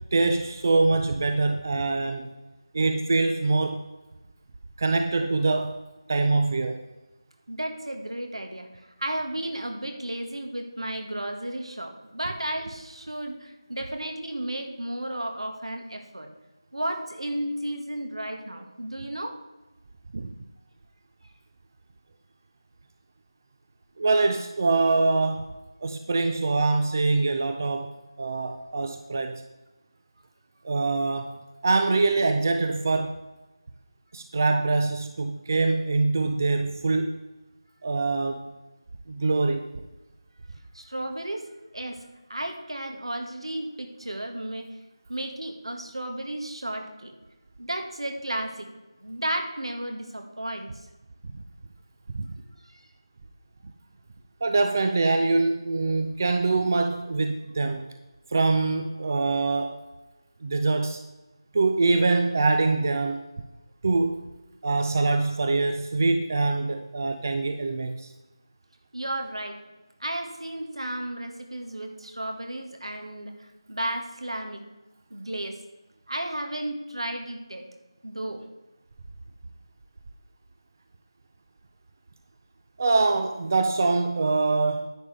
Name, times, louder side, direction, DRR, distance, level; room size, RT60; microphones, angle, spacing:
voice 1, 0.1-2.3 2.7-3.8 4.8-5.8 6.1-6.8 20.1-20.3 24.0-25.5 25.8-27.9 28.2-29.4 30.6-33.2 34.1-37.2 37.8-38.5 39.1-39.6 51.3-51.4 52.1-52.3 54.4-57.9 58.3-59.8 60.4-61.0 61.5-63.2 63.8-64.3 64.6-68.1 82.8-84.9, right 3 dB, 35° right, 6 dB, 0.5 m, -24 dB
voice 2, 7.5-8.7 9.0-16.3 16.7-19.4 40.7-41.5 41.7-44.7 45.1-47.1 47.6-48.7 49.0-50.7 52.7-52.8 68.9-69.6 70.0-73.4 73.7-74.6 75.1-75.6 76.1-77.7 78.0-78.4, right 1 dB, 80° right, 4 dB, 1.7 m, -33 dB
10.5 x 8.5 x 3.3 m, 1.1 s
figure-of-eight pair, 165°, 3 cm